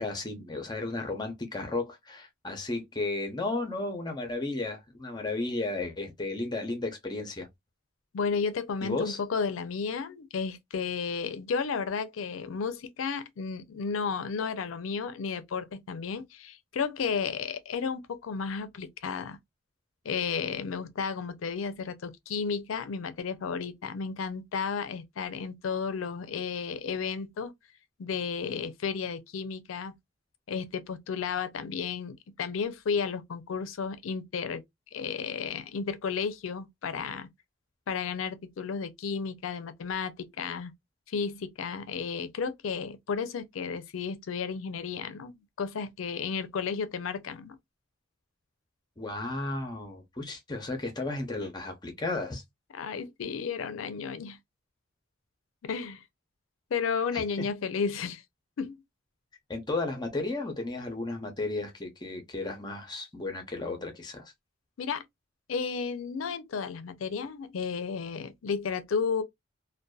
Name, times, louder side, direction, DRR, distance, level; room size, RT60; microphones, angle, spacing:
voice 1, 0.0-7.5 8.8-9.2 49.0-52.4 57.1-57.5 59.5-64.3, left 2 dB, 20° left, 0.6 m, -34 dB
voice 2, 8.1-19.4 20.0-27.5 28.0-29.9 30.5-34.6 34.9-37.3 37.9-40.7 41.1-47.6 52.7-54.4 55.6-56.0 56.7-58.2 58.6-58.7 64.8-65.0 65.5-69.2, left 5 dB, 85° left, 0.4 m, -33 dB
2.5 x 2.2 x 2.2 m
head